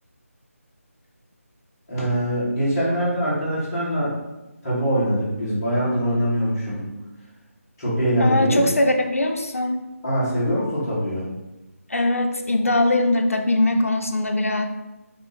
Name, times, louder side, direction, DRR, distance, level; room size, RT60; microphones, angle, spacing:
voice 1, 1.9-4.1 4.6-6.9 7.8-8.6 10.0-11.3, equal, 20° left, -10 dB, 1.5 m, -23 dB
voice 2, 8.2-9.8 11.9-14.7, left 2 dB, 65° left, 5 dB, 0.5 m, -21 dB
5.0 x 2.1 x 4.0 m, 1.0 s
figure-of-eight pair, 160°, 8 cm